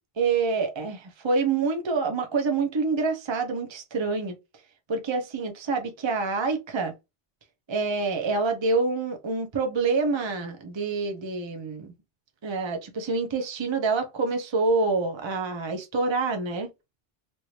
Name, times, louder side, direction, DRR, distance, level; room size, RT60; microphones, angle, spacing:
voice 1, 0.2-4.3 4.9-6.9 7.7-11.9 12.4-16.7, right 4 dB, 30° right, 0.7 m, -27 dB
2.9 x 2.7 x 3.1 m
omnidirectional pair, 1.2 m